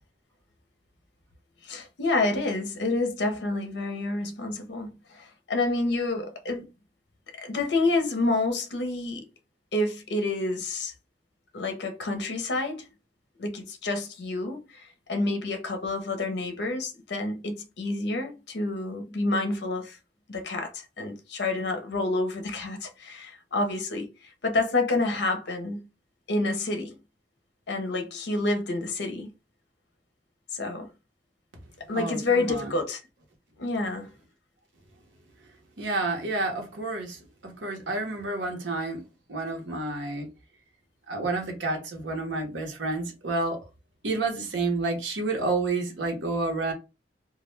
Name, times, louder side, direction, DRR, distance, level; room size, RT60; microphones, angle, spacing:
voice 1, 1.6-6.7 7.3-9.2 9.7-10.9 11.5-12.9 13.4-20.0 20.3-25.8 26.3-27.0 27.7-29.3 30.5-30.9 31.8-33.0 33.6-34.1, left 2 dB, 65° left, 0.6 m, -28 dB
voice 2, 31.9-32.6 35.8-39.0 39.3-40.3 41.1-43.6 44.0-46.7, right 3 dB, 80° right, 0.9 m, -29 dB
2.2 x 2.1 x 3.1 m
head